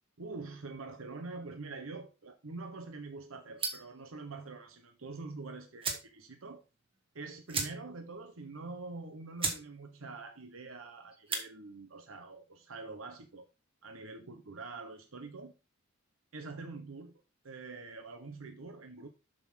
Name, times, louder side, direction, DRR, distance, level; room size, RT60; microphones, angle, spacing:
voice 1, 0.2-6.6 7.1-13.5 13.8-15.5 16.3-17.1 17.4-19.1, right 3 dB, 80° right, 1.0 m, -45 dB
sound 1, 3.6-4.0 5.3-5.4 5.8-6.1 6.5-6.6 6.8-7.0 7.5-8.1 8.4-8.5 9.0-9.1 9.4-9.7 10.0-10.4 11.1-11.5, right 4 dB, 25° right, 1.6 m, -36 dB
7.7 x 3.8 x 6.2 m
head